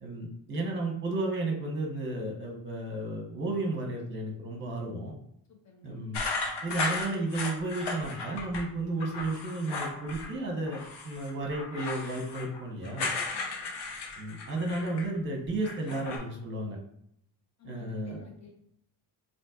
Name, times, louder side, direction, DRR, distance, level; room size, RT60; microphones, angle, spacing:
voice 1, 0.0-5.1 5.8-6.2 6.6-13.1 14.2-16.8 17.6-18.3, right 2 dB, 30° right, 1 dB, 0.9 m, -33 dB
voice 2, 5.5-6.0 13.3-13.7 17.6-18.5, left 5 dB, 40° left, 1 dB, 0.9 m, -53 dB
sound 1, 6.1-8.6 9.0-10.3 10.7-15.2 15.5-16.2, left 3 dB, 75° left, 0.9 m, -35 dB
4.1 x 2.7 x 2.4 m, 0.71 s
cardioid pair, 130°, 41 cm